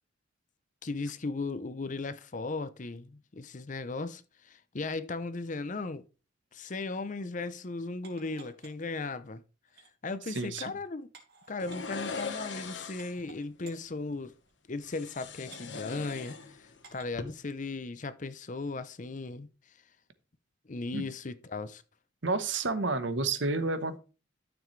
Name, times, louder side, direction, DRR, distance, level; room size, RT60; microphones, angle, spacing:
voice 1, 0.8-6.0 6.5-9.4 10.0-11.1 11.5-14.3 14.7-19.5 20.7-21.8, left 3 dB, 40° left, 0.6 m, -37 dB
sound 1, 8.0-8.9 9.6-9.9 11.1-11.8 12.5-12.6 13.0-13.8 14.4-14.5 14.9-15.6 16.8-17.2 17.8-17.9, right 5 dB, 55° right, 2.7 m, -54 dB
voice 2, 10.3-10.8 20.9-21.0 22.2-24.0, right 3 dB, 70° right, 1.1 m, -30 dB
sound 2, 11.6-13.2 14.8-16.8 17.1-17.2, left 4 dB, 70° left, 1.4 m, -40 dB
12.5 x 7.0 x 3.2 m
head